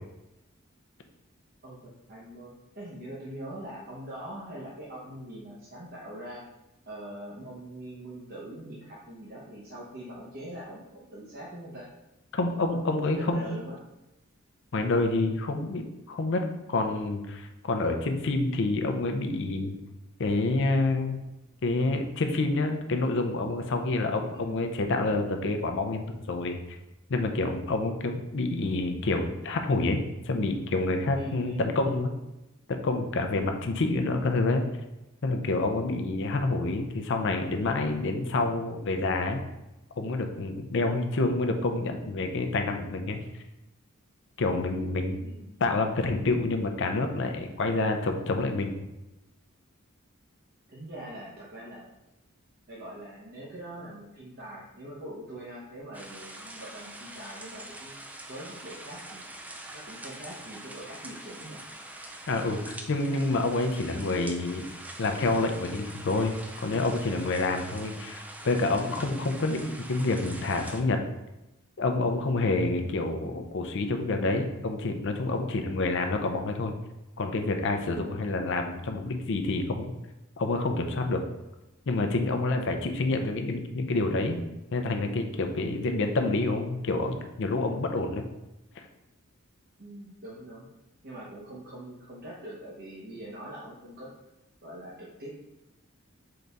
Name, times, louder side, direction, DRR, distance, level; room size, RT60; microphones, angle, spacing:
voice 1, 1.6-6.4 6.9-11.9 12.7-12.8 13.1-13.7 24.3-24.6 31.1-31.7 33.3-33.6 45.2-45.5 50.7-51.9 52.7-58.0 58.3-59.2 59.7-61.6 67.7-68.1 78.0-78.4 89.8-90.7 91.0-94.1 94.6-95.3, right 1 dB, 45° right, -6 dB, 0.9 m, -43 dB
voice 2, 12.3-13.6 14.7-19.8 20.2-21.2 21.6-26.6 27.1-30.0 30.3-32.1 32.7-34.6 35.2-39.4 40.0-43.2 44.4-45.2 45.6-48.8 62.3-64.7 65.0-71.0 71.8-76.7 77.2-79.9 80.4-81.2 81.9-84.4 84.7-88.2, left 2 dB, 60° left, 5 dB, 0.5 m, -28 dB
sound 1, 55.9-70.8, right 1 dB, 5° right, 0.3 m, -44 dB
3.8 x 3.4 x 4.0 m, 0.97 s
head